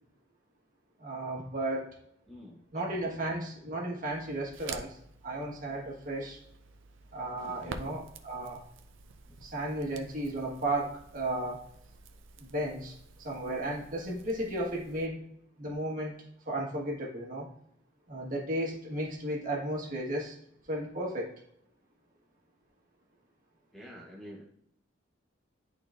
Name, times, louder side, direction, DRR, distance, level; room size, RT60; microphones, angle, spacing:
voice 1, 1.0-1.9 2.7-6.4 7.1-8.6 9.4-11.7 12.4-15.2 15.6-17.5 18.1-20.4 20.7-21.3, right 1 dB, 45° right, -2 dB, 1.5 m, -34 dB
voice 2, 2.3-2.8 7.4-8.0 9.3-9.6 23.7-24.4, equal, ahead, -4 dB, 1.0 m, -49 dB
Crackle, 4.1-15.1, right 4 dB, 70° right, 0.6 m, -49 dB
10.5 x 4.1 x 2.5 m, 0.74 s
head